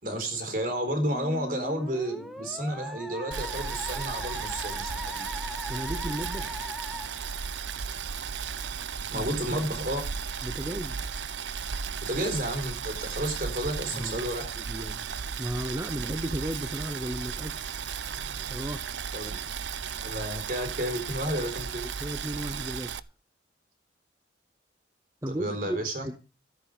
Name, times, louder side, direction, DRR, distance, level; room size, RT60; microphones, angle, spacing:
voice 1, 0.0-5.3 9.1-10.0 12.0-14.5 19.1-19.4 20.0-21.8 25.3-26.1, right 1 dB, 50° right, 6 dB, 4.1 m, -31 dB
Musical instrument, 1.1-8.0, equal, ahead, 1.2 m, -39 dB
Boiling, 3.3-23.0, right 6 dB, 75° right, 0.7 m, -35 dB
voice 2, 5.7-6.6 9.1-9.3 9.6-9.8 10.4-11.0 13.9-14.2 14.5-15.1 15.4-17.6 18.4-18.9 22.0-23.0 25.2-26.2, equal, 15° right, 9 dB, 0.8 m, -35 dB
14.0 x 10.5 x 5.0 m, 0.34 s
head